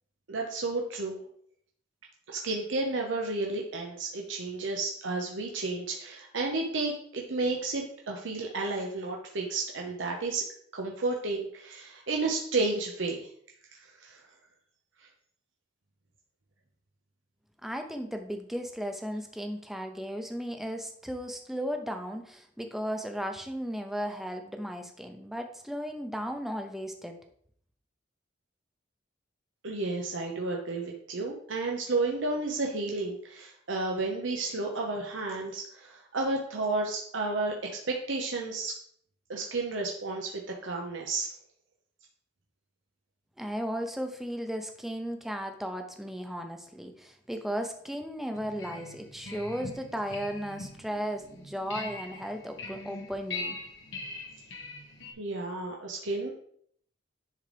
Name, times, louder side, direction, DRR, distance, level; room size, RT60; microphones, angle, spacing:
voice 1, 0.3-1.2 2.3-10.5 10.7-13.3 14.0-14.2 29.6-37.5 37.9-38.8 39.3-41.3 55.2-56.4, right 3 dB, 90° right, 0 dB, 0.9 m, -32 dB
voice 2, 17.6-27.2 43.4-53.6, equal, ahead, 5 dB, 0.6 m, -35 dB
sound 1, 48.3-55.1, left 2 dB, 75° left, 1.4 m, -42 dB
10.5 x 3.9 x 3.4 m, 0.64 s
head